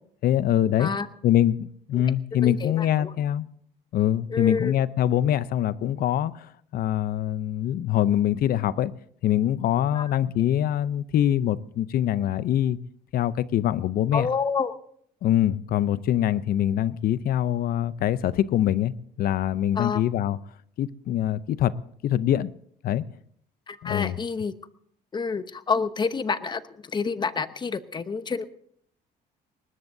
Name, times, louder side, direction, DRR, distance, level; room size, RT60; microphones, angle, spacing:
voice 1, 0.2-0.9 1.2-3.5 3.9-6.5 6.7-8.9 9.2-12.8 13.1-14.3 15.2-18.9 19.2-20.4 20.8-21.7 22.0-22.5 22.8-23.0 23.8-24.1, left 11 dB, 60° left, 0.7 m, -24 dB
voice 2, 2.4-3.1 4.3-4.7 9.9-10.1 14.1-14.7 19.7-20.0 23.7-24.5 25.1-28.4, left 5 dB, 25° left, 0.9 m, -28 dB
21.0 x 19.5 x 2.7 m
cardioid pair, 110°, 17 cm